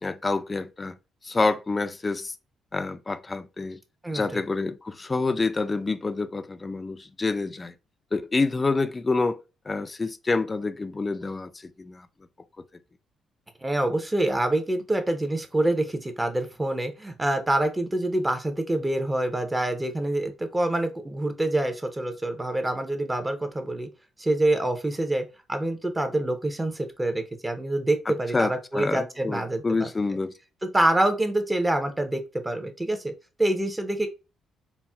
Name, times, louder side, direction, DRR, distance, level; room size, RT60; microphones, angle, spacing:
voice 1, 0.0-1.0 1.2-2.4 2.7-3.8 4.1-7.7 8.1-9.4 9.7-12.1 28.1-30.3, left 3 dB, 25° left, 0.3 m, -27 dB
voice 2, 4.0-4.4 13.6-23.9 24.2-29.9 30.7-33.1 33.4-34.1, right 1 dB, 15° right, 0.6 m, -26 dB
4.0 x 2.1 x 2.2 m
cardioid pair, 90°, 0 cm